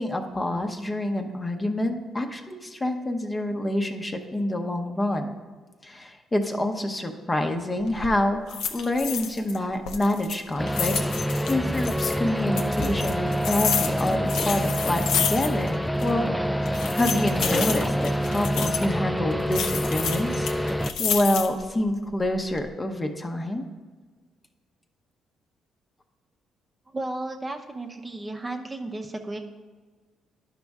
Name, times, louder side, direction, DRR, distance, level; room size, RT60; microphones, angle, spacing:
voice 1, 0.0-5.3 5.8-23.7, left 1 dB, 20° left, 5 dB, 0.8 m, -27 dB
sound 1, 7.8-8.1 8.5-9.6 9.9-12.2 12.6-15.7 16.0-16.1 16.7-18.9 19.5-21.6 22.1-22.6, left 7 dB, 85° left, 0.5 m, -30 dB
sound 2, 10.6-20.9, equal, 5° left, 0.3 m, -26 dB
voice 2, 26.9-29.4, right 2 dB, 20° right, 3 dB, 0.7 m, -33 dB
11.0 x 5.3 x 3.5 m, 1.4 s
cardioid pair, 90°, 0 cm